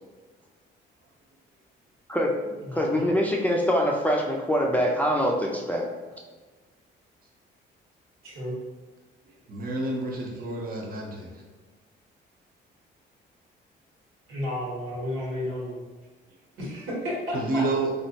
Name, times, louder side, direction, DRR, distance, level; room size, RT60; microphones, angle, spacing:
voice 1, 2.1-5.9, equal, 10° left, -1 dB, 0.4 m, -24 dB
voice 2, 2.6-3.1 8.2-8.5 14.3-15.9 16.6-17.7, left 1 dB, 90° right, -6 dB, 1.3 m, -32 dB
voice 3, 9.5-11.4 17.3-18.1, right 2 dB, 45° right, -1 dB, 0.8 m, -29 dB
3.1 x 2.4 x 2.8 m, 1.3 s
cardioid pair, 90°, 20 cm